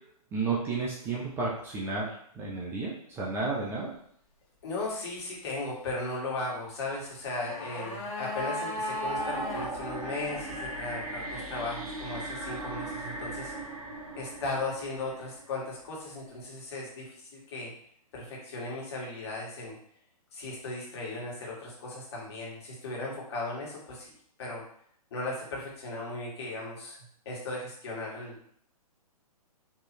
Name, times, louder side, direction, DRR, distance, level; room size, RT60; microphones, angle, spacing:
voice 1, 0.3-3.9, right 3 dB, 10° right, -5 dB, 0.6 m, -32 dB
voice 2, 4.6-13.5 14.1-17.7 18.1-19.7 20.3-24.1 24.4-24.6 25.1-27.0 27.2-28.4, left 2 dB, 45° left, -4 dB, 1.7 m, -37 dB
sound 1, 7.1-9.7 10.0-10.1, left 1 dB, 25° left, 1.4 m, -35 dB
sound 2, 8.8-15.9, right 2 dB, 70° right, 1.1 m, -38 dB
4.4 x 3.1 x 3.1 m, 0.64 s
figure-of-eight pair, 125°, 19 cm